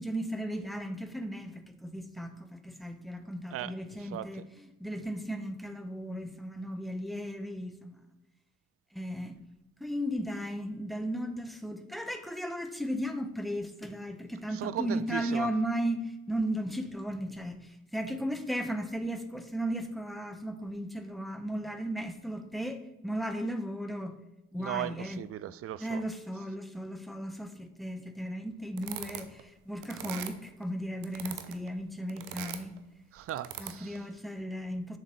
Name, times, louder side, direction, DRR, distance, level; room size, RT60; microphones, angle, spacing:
voice 1, 0.0-4.4 4.8-8.0 8.9-9.4 9.8-24.2 24.5-25.2 25.8-32.7 33.6-35.0, equal, ahead, 1.1 m, -35 dB
voice 2, 4.0-4.5 14.5-15.5 24.6-26.0 33.1-34.1, right 12 dB, 40° right, 0.5 m, -37 dB
sound 1, 28.8-29.4 29.8-30.7 31.0-31.7 32.1-32.8 33.3-34.0, right 11 dB, 70° right, 0.8 m, -41 dB
6.9 x 6.4 x 5.1 m
figure-of-eight pair, 45°, 36 cm